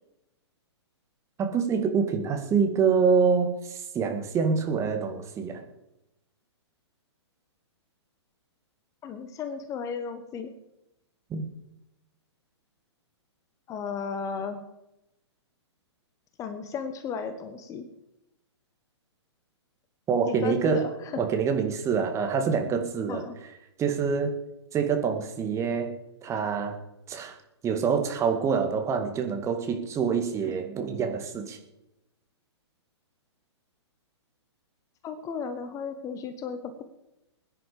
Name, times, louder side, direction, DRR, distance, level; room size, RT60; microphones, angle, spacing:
voice 1, 1.4-5.7 11.3-11.5 20.1-20.9 21.2-23.3 23.8-24.4 24.7-25.9 26.2-26.8 27.1-27.4 27.6-31.6, right 6 dB, 20° right, 5 dB, 2.0 m, -26 dB
voice 2, 9.0-10.5 13.7-14.6 16.4-17.9 20.3-20.9 23.1-23.3 30.4-30.5 35.0-36.8, left 6 dB, 20° left, 9 dB, 1.2 m, -34 dB
21.0 x 10.5 x 5.0 m, 0.92 s
figure-of-eight pair, 120°, 15 cm